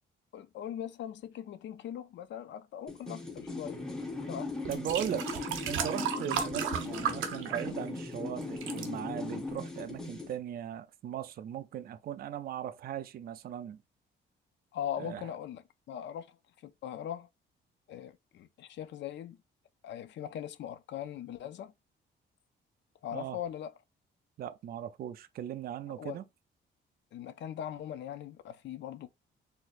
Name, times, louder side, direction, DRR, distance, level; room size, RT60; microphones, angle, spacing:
voice 1, 0.3-3.8 4.3-4.5 14.7-15.6 15.9-16.4 16.6-17.3 17.9-19.4 19.8-21.7 23.0-23.7 26.0-26.2 27.1-29.1, left 10 dB, 65° left, 0.5 m, -40 dB
sound 1, 2.9-10.4, left 3 dB, 5° left, 0.9 m, -39 dB
sound 2, 4.0-4.1 4.6-8.1 8.4-8.9 9.6-9.7, right 8 dB, 85° right, 0.6 m, -34 dB
voice 2, 4.7-5.3 5.7-13.8 15.0-15.3 23.1-23.4 24.4-26.2, right 10 dB, 50° right, 0.4 m, -38 dB
4.2 x 2.6 x 2.4 m
cardioid pair, 90°, 20 cm